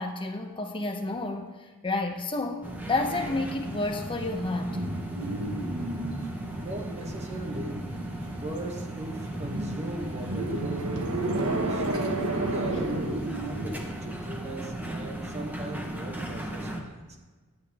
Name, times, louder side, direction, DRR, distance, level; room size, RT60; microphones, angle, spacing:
voice 1, 0.0-4.8, left 2 dB, 25° left, 4 dB, 0.7 m, -30 dB
sound 1, 2.6-16.8, right 1 dB, 10° right, 0.9 m, -37 dB
sound 2, 3.6-13.7, right 2 dB, 75° right, 1.2 m, -33 dB
voice 2, 6.6-7.8 8.3-10.9 11.4-17.2, right 1 dB, 30° right, 3 dB, 1.0 m, -39 dB
Wind, 9.7-16.6, left 1 dB, 60° left, 1.3 m, -52 dB
10.0 x 9.6 x 3.5 m, 1.3 s
head